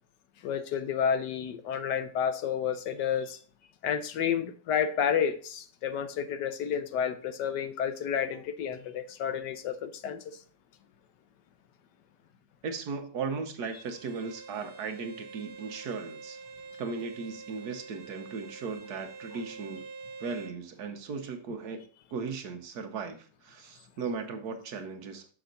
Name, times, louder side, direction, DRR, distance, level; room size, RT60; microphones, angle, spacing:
voice 1, 0.4-3.4 3.8-10.4, left 8 dB, 80° left, 1.4 m, -30 dB
voice 2, 12.6-16.4 16.8-19.9 20.2-21.8 22.1-25.3, right 5 dB, 70° right, 1.5 m, -37 dB
Bowed string instrument, 13.6-20.6, right 4 dB, 35° right, 1.8 m, -46 dB
6.4 x 6.0 x 3.8 m
omnidirectional pair, 1.8 m